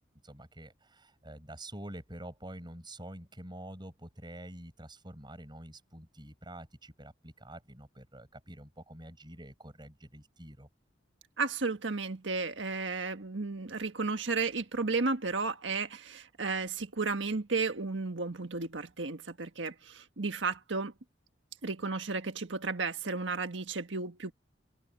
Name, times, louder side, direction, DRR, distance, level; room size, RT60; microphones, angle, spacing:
voice 1, 0.2-10.7, right 1 dB, 25° right, 6.7 m, -47 dB
voice 2, 11.4-20.9 21.6-24.3, right 4 dB, 80° right, 1.5 m, -33 dB
open air
head